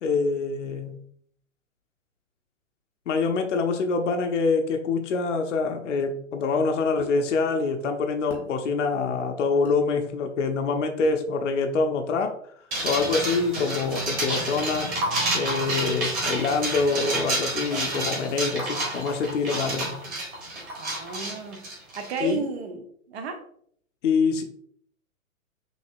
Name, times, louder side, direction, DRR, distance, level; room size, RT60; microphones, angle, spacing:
voice 1, 0.0-1.0 3.1-12.4 12.8-14.9 15.3-20.0 22.2-22.4 24.0-24.4, left 4 dB, 60° left, 5 dB, 0.7 m, -25 dB
sound 1, 7.0-7.2 8.3-8.5 9.6-9.8 11.0-11.2, left 4 dB, 5° left, 0.5 m, -39 dB
sound 2, 12.7-22.3, right 1 dB, 20° right, 1.4 m, -29 dB
voice 2, 20.8-21.7 22.0-23.4, right 5 dB, 50° right, 6 dB, 0.7 m, -33 dB
6.1 x 2.7 x 2.6 m, 0.64 s
figure-of-eight pair, 115°, 41 cm